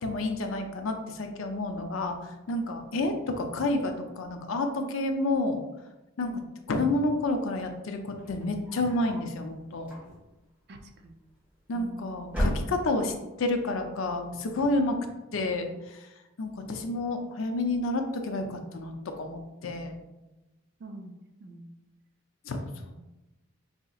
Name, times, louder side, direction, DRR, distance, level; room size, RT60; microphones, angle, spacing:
voice 1, 0.0-2.2 2.5-5.6 6.2-6.3 6.7-9.9 11.7-15.0 15.3-15.7 16.4-18.9 19.2-20.0 22.5-22.9, left 2 dB, 70° left, 5 dB, 0.5 m, -29 dB
sound 1, 8.1-9.3 9.8-10.5 11.4-11.9 12.2-13.2, equal, 5° right, 1.3 m, -33 dB
voice 2, 10.7-11.2 11.7-12.1 20.8-21.1 21.4-21.7, right 2 dB, 50° right, 5 dB, 0.4 m, -45 dB
4.9 x 2.8 x 2.3 m, 1.0 s
head